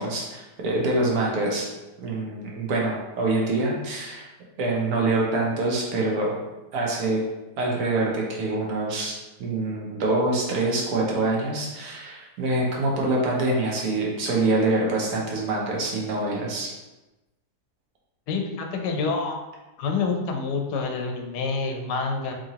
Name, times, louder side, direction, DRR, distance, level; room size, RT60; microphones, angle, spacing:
voice 1, 0.0-1.7 2.0-4.3 4.6-6.4 6.7-7.2 7.6-9.1 9.4-16.7, right 2 dB, 70° right, -2 dB, 1.2 m, -25 dB
voice 2, 18.3-19.4 19.8-22.3, left 4 dB, 85° left, 3 dB, 1.2 m, -27 dB
3.7 x 3.0 x 2.8 m, 1.1 s
omnidirectional pair, 1.7 m